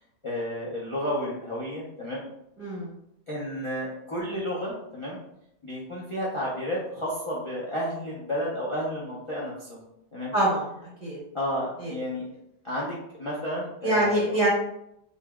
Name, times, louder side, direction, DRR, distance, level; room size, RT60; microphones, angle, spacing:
voice 1, 0.2-2.2 3.3-5.2 5.6-9.8 10.1-10.3 11.3-12.3 12.6-14.2, equal, 35° left, -6 dB, 0.4 m, -31 dB
voice 2, 2.6-2.9 10.3-10.6 11.0-11.2 11.8-11.9 13.8-14.5, right 1 dB, 30° right, -6 dB, 0.8 m, -24 dB
5.3 x 2.7 x 2.3 m, 0.79 s
omnidirectional pair, 1.9 m